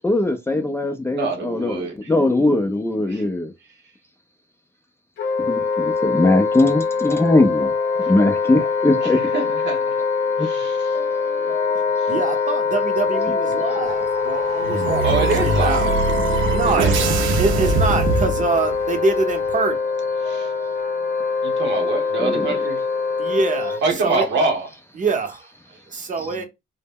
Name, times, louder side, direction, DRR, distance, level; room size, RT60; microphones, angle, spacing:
voice 1, 0.0-3.5 5.4-7.7 8.1-9.2 10.4-10.5 22.2-22.6, left 2 dB, 10° left, 0.4 m, -20 dB
voice 2, 1.1-2.1 3.1-3.2 8.0-8.1 8.5-8.7 9.0-10.0 10.4-11.0 11.4-12.1 15.0-15.9 16.6-16.9 20.2-20.5 21.4-22.8 23.8-24.7 26.2-26.4, right 3 dB, 65° right, 0.9 m, -26 dB
Wind instrument woodwind instrument, 5.2-23.8, left 5 dB, 60° left, 0.6 m, -23 dB
sound 1, 6.6-24.0, left 1 dB, 30° left, 1.0 m, -37 dB
voice 3, 12.1-15.8 16.2-17.1 17.4-19.8 23.2-24.2 25.0-25.5 25.9-26.4, right 4 dB, 40° right, 0.7 m, -25 dB
sound 2, 13.8-18.9, right 3 dB, 80° right, 0.5 m, -22 dB
2.1 x 2.0 x 3.4 m
cardioid pair, 90°, 20 cm